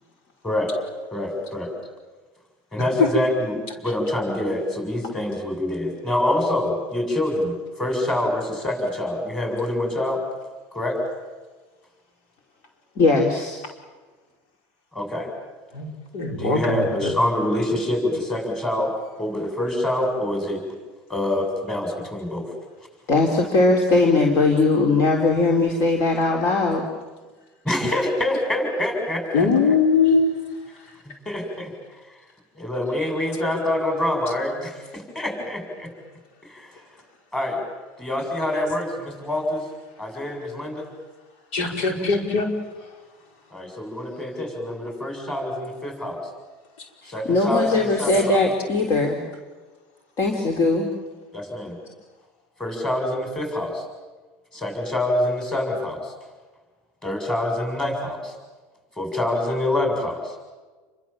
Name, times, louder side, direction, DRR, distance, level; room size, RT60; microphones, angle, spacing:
voice 1, 0.4-0.8 1.1-1.7 2.7-10.2 10.7-11.0 14.9-15.3 16.4-20.6 21.1-22.5 27.6-29.5 31.3-31.7 32.5-35.9 36.4-36.8 37.3-37.6 38.0-39.7 40.0-40.9 43.5-46.2 47.1-48.4 51.3-51.8 52.6-53.8 54.5-56.1 57.0-58.3 59.0-60.3, left 1 dB, 10° left, 3 dB, 7.4 m, -26 dB
voice 2, 13.0-13.6 23.1-26.8 47.0-49.2 50.2-50.9, left 3 dB, 45° left, 2 dB, 3.8 m, -20 dB
voice 3, 15.7-17.1 29.3-30.9 41.5-42.5 42.8-42.9 46.8-46.9, left 4 dB, 80° left, 2 dB, 5.2 m, -21 dB
29.0 x 24.0 x 7.4 m, 1.3 s
cardioid pair, 145°, 6 cm